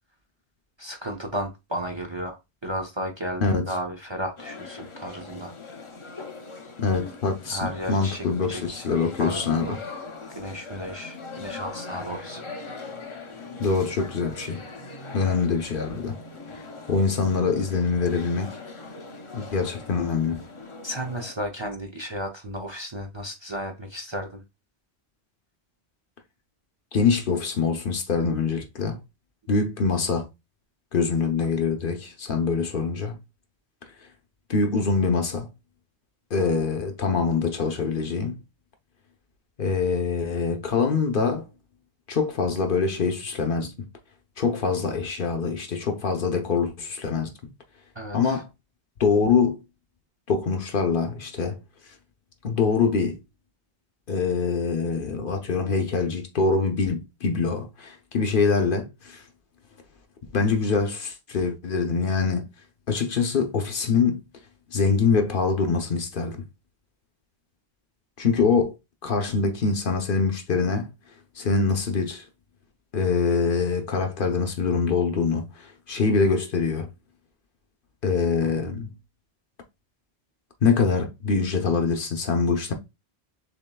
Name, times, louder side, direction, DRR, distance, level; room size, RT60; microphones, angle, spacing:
voice 1, 0.8-5.5 7.5-8.9 9.2-9.8 10.3-12.4 20.8-24.4 29.6-29.7 47.9-48.4, equal, 30° right, 0.6 m, -34 dB
sound 1, 4.4-21.3, left 3 dB, 35° left, 0.6 m, -41 dB
voice 2, 6.8-7.6 7.9-9.7 13.6-14.6 15.1-16.2 16.5-16.6 16.9-18.5 19.3-20.4 26.9-29.0 29.5-30.3 30.9-33.1 34.5-35.5 36.3-38.4 39.6-41.5 42.1-43.8 44.4-47.3 48.1-48.5 49.0-49.6 50.3-51.6 52.4-53.2 54.1-59.2 60.3-62.5 62.9-64.2 64.7-66.4 68.2-68.8 69.0-70.9 71.4-72.2 72.9-75.5 75.9-76.9 78.0-78.9 80.6-82.7, left 5 dB, 55° left, 0.9 m, -24 dB
6.9 x 2.9 x 2.2 m
omnidirectional pair, 1.1 m